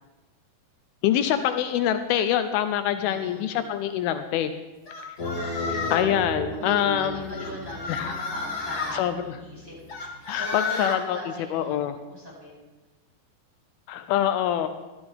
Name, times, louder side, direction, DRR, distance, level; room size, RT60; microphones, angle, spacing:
voice 1, 1.0-4.6 5.7-7.5 7.9-8.1 8.9-9.4 10.3-11.2 11.5-12.0 13.9-14.7, left 10 dB, 85° left, 9 dB, 2.4 m, -25 dB
voice 2, 2.9-3.7 6.5-9.7 10.0-11.8 12.1-12.7, left 1 dB, 5° right, -7 dB, 4.9 m, -40 dB
sound 1, 4.9-6.1 7.3-9.0 9.9-11.0, left 4 dB, 65° left, 0.9 m, -32 dB
sound 2, 5.2-10.1, left 1 dB, 45° left, 1.2 m, -35 dB
15.5 x 12.0 x 3.5 m, 1.1 s
omnidirectional pair, 4.3 m